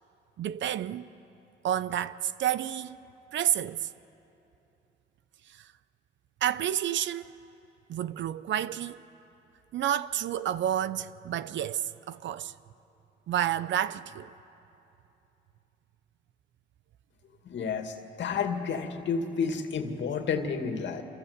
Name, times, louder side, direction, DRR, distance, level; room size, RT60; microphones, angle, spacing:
voice 1, 0.4-1.1 1.6-3.0 3.3-3.9 5.5-5.7 6.4-7.4 7.9-9.0 9.7-12.5 13.3-14.3, right 11 dB, 70° right, 0.8 m, -30 dB
voice 2, 17.5-21.0, left 5 dB, 65° left, 2.3 m, -31 dB
27.5 x 26.5 x 8.2 m
cardioid pair, 90°, 20 cm